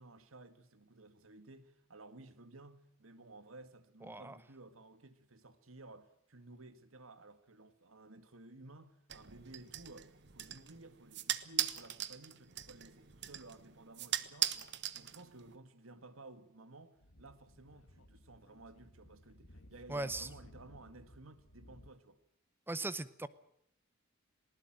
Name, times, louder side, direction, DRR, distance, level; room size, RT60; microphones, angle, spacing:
voice 1, 0.0-22.2, right 2 dB, 85° right, 2.0 m, -55 dB
voice 2, 4.0-4.4 19.9-20.3 22.7-23.3, right 2 dB, 10° right, 0.8 m, -39 dB
sound 1, 9.1-15.6, right 12 dB, 55° right, 1.2 m, -40 dB
Speech / Wind, 17.0-21.9, left 1 dB, 80° left, 2.3 m, -58 dB
20.0 x 18.5 x 9.0 m
head